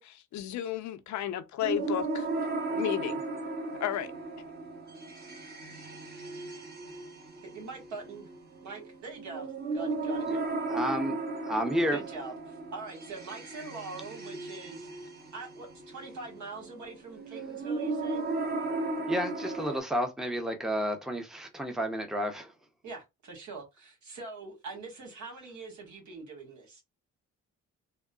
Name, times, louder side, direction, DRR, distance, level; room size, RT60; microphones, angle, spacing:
voice 1, 0.0-2.2 2.7-3.2 3.8-4.1, left 12 dB, 70° left, 0.5 m, -33 dB
sound 1, 1.6-19.8, right 2 dB, 35° right, 1.0 m, -36 dB
voice 2, 7.5-8.3 8.6-10.4 11.9-14.9 15.3-18.2 22.8-26.8, right 3 dB, 70° right, 1.6 m, -43 dB
voice 3, 10.7-11.2 11.4-12.0 19.1-22.5, equal, ahead, 0.6 m, -31 dB
3.5 x 2.0 x 2.3 m
cardioid pair, 90°, 30 cm